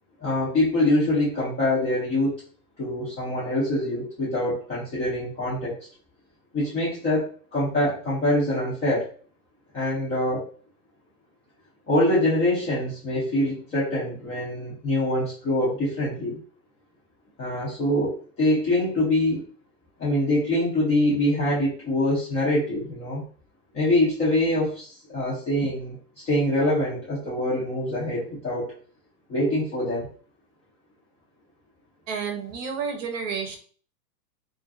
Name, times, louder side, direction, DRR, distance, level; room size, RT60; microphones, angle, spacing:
voice 1, 0.2-2.4 2.8-5.8 6.5-9.1 9.7-10.5 11.9-16.4 17.4-19.4 20.0-23.2 23.7-26.0 26.2-28.7 29.3-30.1, left 1 dB, 15° left, -8 dB, 0.4 m, -24 dB
voice 2, 32.1-33.6, right 6 dB, 50° right, 3 dB, 0.7 m, -30 dB
2.5 x 2.4 x 2.4 m, 0.43 s
hypercardioid pair, 145°, 48 cm